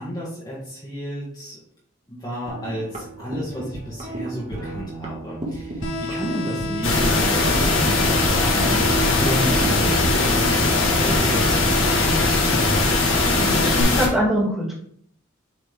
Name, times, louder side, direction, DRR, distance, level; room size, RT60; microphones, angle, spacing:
voice 1, 0.0-1.6 2.1-12.9, equal, 20° left, -6 dB, 1.4 m, -32 dB
sound 1, 2.5-10.8, right 2 dB, 35° right, 1.3 m, -32 dB
sound 2, 5.8-13.8, left 2 dB, 65° left, 1.1 m, -30 dB
sound 3, 6.8-14.1, left 2 dB, 85° left, 1.5 m, -20 dB
voice 2, 13.4-14.7, equal, ahead, -5 dB, 2.0 m, -23 dB
7.6 x 4.0 x 3.4 m, 0.65 s
head